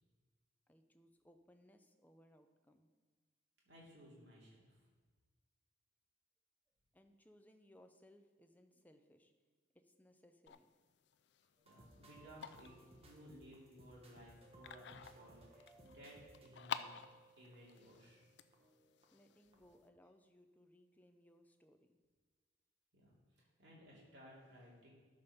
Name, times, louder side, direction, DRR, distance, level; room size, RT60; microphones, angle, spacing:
voice 1, 0.7-2.9 6.9-9.3 9.7-10.7 19.1-22.0, equal, 10° left, 6 dB, 0.5 m, -66 dB
voice 2, 3.6-4.9 11.6-12.7 13.0-16.9 17.3-18.2 22.9-24.9, equal, 60° right, -5 dB, 2.8 m, -59 dB
sound 1, 10.5-19.9, left 7 dB, 60° left, 0.4 m, -52 dB
sound 2, 11.6-19.3 19.5-19.9, right 2 dB, 30° right, 1.3 m, -64 dB
13.0 x 5.2 x 5.5 m, 1.4 s
head